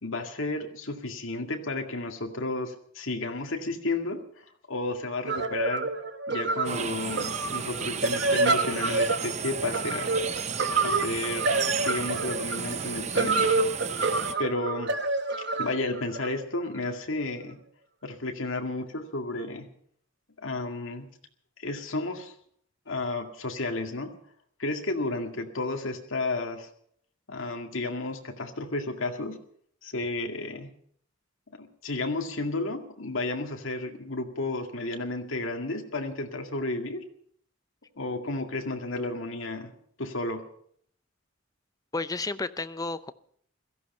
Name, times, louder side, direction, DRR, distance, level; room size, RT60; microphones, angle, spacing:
voice 1, 0.0-4.2 4.7-5.9 6.3-10.2 10.8-13.5 14.4-15.0 15.6-17.6 18.0-19.7 20.4-21.1 21.6-22.3 22.9-24.1 24.6-26.7 27.3-29.4 29.8-30.7 31.5-37.0 38.0-39.7 40.0-40.5, left 2 dB, 75° left, 3 dB, 2.1 m, -32 dB
sound 1, 5.3-16.9, right 3 dB, 55° right, 1.1 m, -28 dB
sound 2, 6.7-14.4, right 6 dB, 35° right, 0.7 m, -33 dB
voice 2, 41.9-43.1, left 3 dB, 15° left, 13 dB, 0.5 m, -32 dB
17.0 x 14.5 x 5.5 m, 0.63 s
head